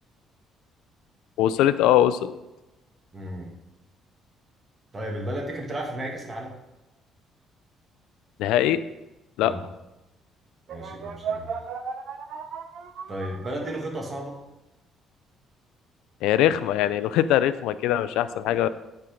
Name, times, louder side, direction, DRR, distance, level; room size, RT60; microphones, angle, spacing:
voice 1, 1.4-2.3 8.4-8.8 9.4-9.5 16.2-18.7, left 12 dB, 90° left, 14 dB, 0.4 m, -21 dB
voice 2, 3.1-3.5 4.9-6.6 9.4-9.6 10.7-11.6 13.1-14.4, right 1 dB, 25° right, 0 dB, 2.1 m, -33 dB
sound 1, 10.7-14.2, right 6 dB, 65° right, 0.8 m, -35 dB
9.4 x 4.5 x 5.1 m, 0.99 s
cardioid pair, 100°, 0 cm